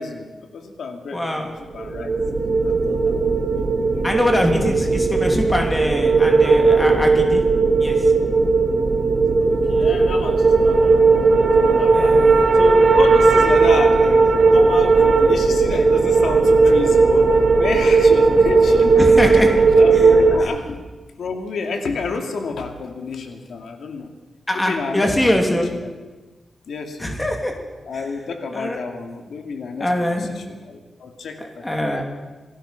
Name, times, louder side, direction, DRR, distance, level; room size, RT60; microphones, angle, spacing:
voice 1, 0.0-2.2 2.6-3.3 3.9-4.9 9.4-11.1 11.6-12.2 12.5-19.0 19.3-20.8 21.2-24.1 24.5-25.4 25.7-25.9 26.7-27.2 27.9-32.0, left 4 dB, 75° left, 5 dB, 2.4 m, -30 dB
voice 2, 1.1-1.5 4.0-7.4 7.8-8.0 11.9-12.4 18.9-19.5 20.4-20.5 24.5-25.7 27.0-27.5 28.5-28.8 29.8-30.3 31.4-32.0, left 1 dB, 10° left, 2 dB, 3.0 m, -22 dB
sound 1, 1.8-20.4, right 4 dB, 40° right, 2.1 m, -16 dB
26.5 x 19.0 x 6.0 m, 1.2 s
wide cardioid pair, 175°, 0 cm